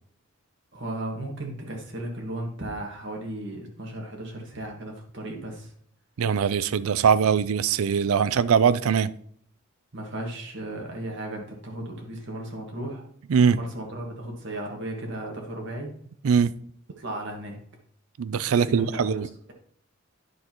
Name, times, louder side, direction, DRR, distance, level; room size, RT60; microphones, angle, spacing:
voice 1, 0.7-5.7 9.9-13.0 13.5-15.9 17.0-17.6 18.5-19.2, right 1 dB, 55° right, 1.6 m, -35 dB
voice 2, 6.2-9.1 13.3-13.6 16.2-16.5 18.2-19.3, right 6 dB, 75° right, 0.4 m, -21 dB
9.5 x 6.4 x 3.0 m
head